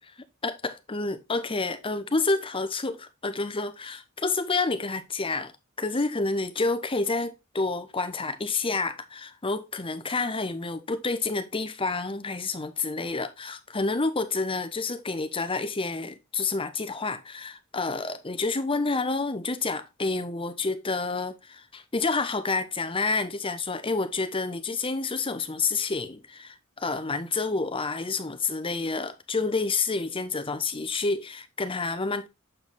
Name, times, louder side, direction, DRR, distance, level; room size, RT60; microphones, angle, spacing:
voice 1, 0.4-5.5 5.8-32.3, left 3 dB, 25° left, 0.9 m, -29 dB
7.8 x 4.8 x 3.8 m
head